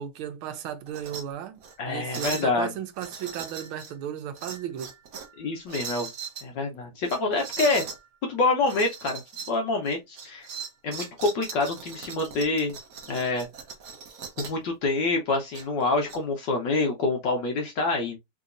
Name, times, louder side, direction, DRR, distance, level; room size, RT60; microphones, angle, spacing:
voice 1, 0.0-1.6 1.9-4.9, right 10 dB, 80° right, 1.5 m, -35 dB
sound 1, 0.9-1.2 1.6-1.7 2.1-2.5 3.0-3.9 4.4-5.3 5.7-6.4 7.0-8.0 8.7-9.6 9.9-14.6 15.5-16.2, right 6 dB, 60° right, 0.9 m, -39 dB
voice 2, 1.8-2.7 5.4-6.1 6.4-7.9 8.2-9.2 9.5-10.5 10.8-12.8 13.1-13.5 14.4-18.2, left 3 dB, 65° left, 1.3 m, -26 dB
3.9 x 2.7 x 2.5 m
omnidirectional pair, 2.3 m